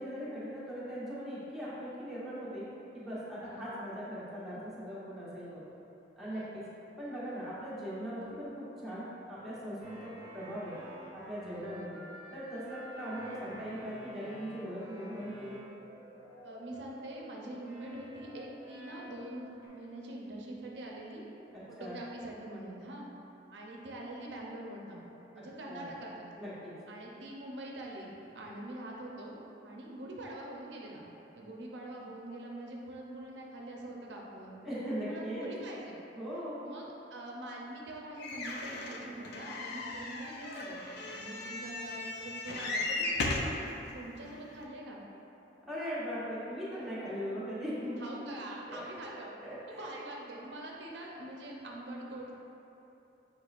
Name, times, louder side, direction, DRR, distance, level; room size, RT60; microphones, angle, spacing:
voice 1, 0.0-2.7 2.9-5.6 6.2-6.6 7.0-10.8 11.1-12.0 12.3-15.6 21.5-22.0 25.4-25.9 26.4-26.7 34.6-35.7 36.1-36.6 45.7-48.3 48.7-48.8 49.4-49.9, equal, ahead, -12 dB, 1.1 m, -40 dB
Codey of Dusk, 9.8-17.1 17.6-19.7, equal, 30° right, 1.2 m, -51 dB
voice 2, 16.4-21.3 21.7-23.1 23.5-25.0 25.3-26.3 26.9-29.4 29.6-31.1 31.3-34.5 35.1-35.9 36.6-40.8 41.1-45.0 48.0-49.4 49.7-52.3, right 1 dB, 70° right, -2 dB, 0.6 m, -44 dB
sound 1, 38.2-43.6 44.3-44.4 44.6-44.7, left 2 dB, 65° left, 0.4 m, -36 dB
6.0 x 3.1 x 2.4 m, 2.9 s
head